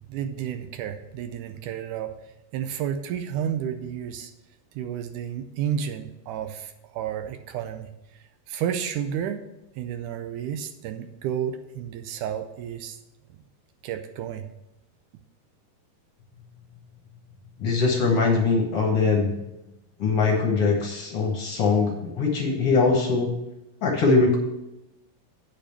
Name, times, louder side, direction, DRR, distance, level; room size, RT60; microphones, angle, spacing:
voice 1, 0.1-2.1 2.5-4.3 4.8-7.9 8.5-9.5 9.8-13.0 13.8-14.5, right 9 dB, 80° right, 8 dB, 2.0 m, -31 dB
voice 2, 17.6-19.3 20.0-23.3 23.8-24.4, left 4 dB, 55° left, 0 dB, 1.8 m, -22 dB
8.6 x 5.3 x 6.7 m, 0.91 s
omnidirectional pair, 3.7 m